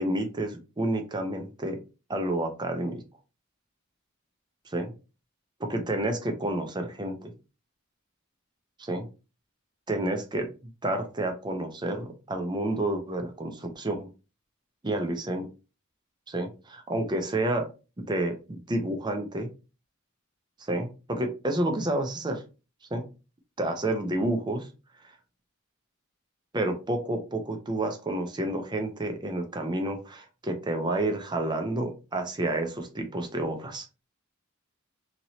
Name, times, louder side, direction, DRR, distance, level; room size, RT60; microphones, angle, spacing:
voice 1, 0.0-1.8 2.1-3.0 4.7-4.9 5.7-7.3 8.8-9.1 9.9-10.5 10.8-14.1 14.8-15.5 16.3-17.7 18.1-19.5 20.6-22.4 22.9-23.0 23.6-24.7 26.5-33.9, right 1 dB, 20° right, 5 dB, 0.5 m, -30 dB
2.9 x 2.8 x 2.7 m, 0.32 s
head